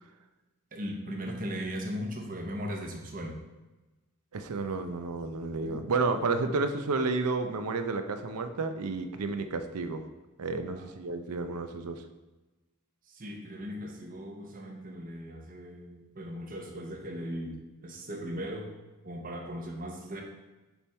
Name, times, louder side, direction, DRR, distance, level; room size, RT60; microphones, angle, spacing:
voice 1, 0.7-3.4 5.6-5.9 10.7-10.9 13.1-18.7 19.0-20.2, equal, 40° right, 2 dB, 0.9 m, -38 dB
voice 2, 4.3-10.1 10.4-12.1, right 3 dB, 85° right, 8 dB, 0.6 m, -31 dB
7.1 x 3.6 x 4.2 m, 1.1 s
head